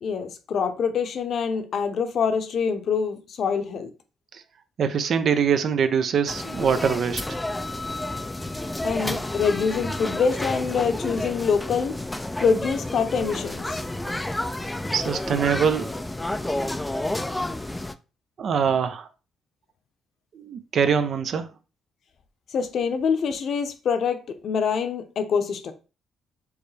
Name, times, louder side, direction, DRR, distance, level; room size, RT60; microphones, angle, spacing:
voice 1, 0.0-3.9 8.8-12.0 12.4-13.8 22.5-25.7, left 6 dB, 60° left, 0.7 m, -25 dB
voice 2, 4.8-7.2 14.9-15.9 18.4-19.1 20.3-21.5, right 7 dB, 60° right, 0.6 m, -23 dB
sound 1, 6.3-17.9, left 1 dB, 10° left, 0.4 m, -30 dB
4.8 x 3.3 x 3.3 m
cardioid pair, 90°, 0 cm